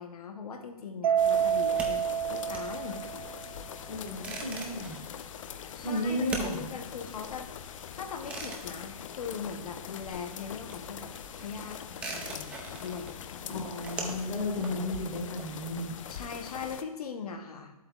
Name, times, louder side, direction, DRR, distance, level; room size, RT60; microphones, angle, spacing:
voice 1, 0.0-3.0 5.7-7.5 7.9-13.6 16.1-17.7, left 6 dB, 90° left, 3 dB, 1.0 m, -40 dB
Mallet percussion, 1.0-3.5, right 8 dB, 70° right, 0.4 m, -28 dB
sound 1, 1.2-16.8, left 8 dB, 60° left, 0.5 m, -43 dB
sound 2, 1.7-9.9 10.2-16.0, right 3 dB, 5° right, 0.4 m, -42 dB
voice 2, 3.9-5.0 5.8-6.7 13.5-16.0, left 1 dB, 20° left, -2 dB, 1.7 m, -33 dB
10.0 x 7.8 x 2.4 m, 0.98 s
hypercardioid pair, 160°, 19 cm